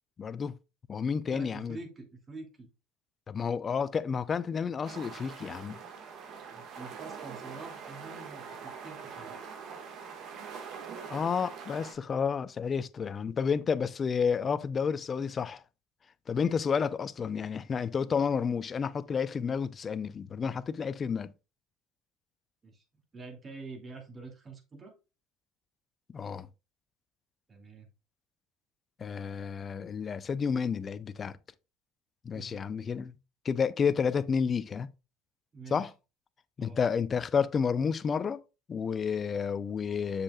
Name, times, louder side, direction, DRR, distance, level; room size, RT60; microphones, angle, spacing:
voice 1, 0.2-0.5 0.9-1.8 3.3-5.8 11.1-15.6 16.3-21.3 26.1-26.5 29.0-31.4 32.2-33.2 33.4-34.9 35.7-35.9 36.6-38.4 38.7-40.2, left 6 dB, 35° left, 0.6 m, -30 dB
voice 2, 1.3-2.7 6.5-9.3 22.6-25.0 27.5-27.9 32.3-32.6 35.5-35.9 36.6-36.8, right 3 dB, 30° right, 2.6 m, -46 dB
sound 1, 4.8-11.9, right 6 dB, 55° right, 1.7 m, -43 dB
7.3 x 6.7 x 2.4 m
supercardioid pair, 85°, 0 cm